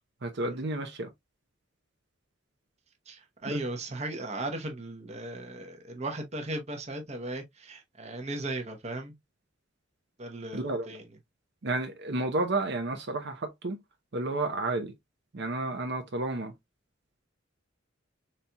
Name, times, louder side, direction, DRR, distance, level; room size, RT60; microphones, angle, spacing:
voice 1, 0.2-1.1 3.5-3.6 10.5-10.9 11.6-13.8 14.1-14.9 15.3-16.5, right 2 dB, 60° right, 0.8 m, -31 dB
voice 2, 3.1-9.2 10.2-11.0, right 2 dB, 35° right, 0.9 m, -37 dB
4.3 x 4.0 x 2.2 m
head